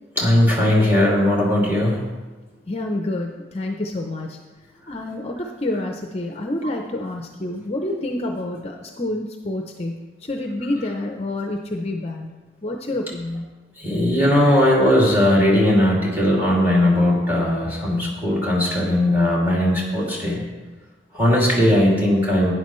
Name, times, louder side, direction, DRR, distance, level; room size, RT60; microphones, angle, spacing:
voice 1, 0.2-2.0 13.8-20.4 21.1-22.5, left 1 dB, 10° right, -4 dB, 2.4 m, -18 dB
voice 2, 2.7-4.4 4.9-12.3 12.6-13.5, left 1 dB, 35° left, 2 dB, 0.6 m, -28 dB
12.0 x 9.8 x 3.1 m, 1.2 s
head